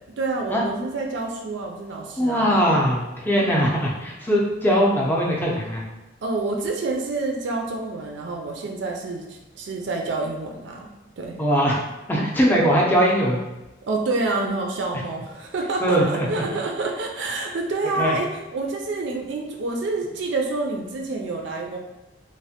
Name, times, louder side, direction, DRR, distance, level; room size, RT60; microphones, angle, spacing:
voice 1, 0.2-2.5 6.2-10.9 11.2-11.4 13.9-21.8, right 3 dB, 70° right, 2 dB, 0.4 m, -28 dB
voice 2, 2.2-5.8 11.4-11.8 12.1-13.4 15.8-16.3 18.0-18.1, equal, 10° left, -3 dB, 0.4 m, -20 dB
3.1 x 2.1 x 2.8 m, 1.0 s
head